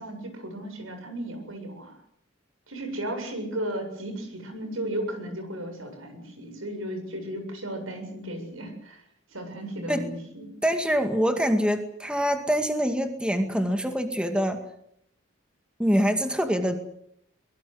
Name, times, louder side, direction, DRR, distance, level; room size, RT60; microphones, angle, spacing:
voice 1, 0.0-2.0 2.7-9.0 9.3-10.5, right 1 dB, 85° right, 7 dB, 7.6 m, -35 dB
voice 2, 10.6-14.6 15.8-16.8, equal, 5° right, 6 dB, 2.1 m, -25 dB
23.0 x 22.5 x 8.0 m, 0.71 s
head